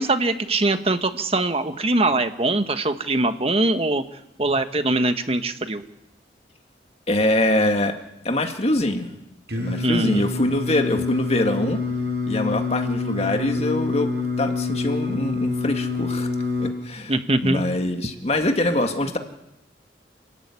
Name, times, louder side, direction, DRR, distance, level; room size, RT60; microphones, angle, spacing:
voice 1, 0.0-5.8 9.8-10.3 17.1-17.6, right 2 dB, 35° right, 9 dB, 1.4 m, -22 dB
voice 2, 7.1-8.0 8.2-9.1 9.6-11.8 12.3-14.1 14.4-16.3 16.6-17.1 17.4-19.2, left 1 dB, 35° left, 5 dB, 2.2 m, -23 dB
Singing, 9.5-16.7, left 3 dB, 65° right, 6.8 m, -26 dB
28.5 x 14.5 x 9.7 m, 0.85 s
head